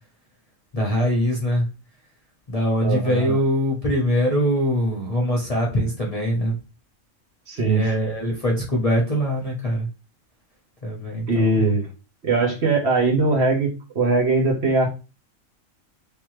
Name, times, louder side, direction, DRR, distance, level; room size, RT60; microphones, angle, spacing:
voice 1, 0.7-1.7 2.5-6.6 7.6-9.9 10.8-11.7, equal, 30° left, -2 dB, 0.8 m, -23 dB
voice 2, 2.8-3.4 7.5-7.9 11.3-11.9 12.2-14.9, right 3 dB, 55° right, -1 dB, 1.3 m, -21 dB
3.4 x 3.0 x 3.1 m, 0.31 s
omnidirectional pair, 1.4 m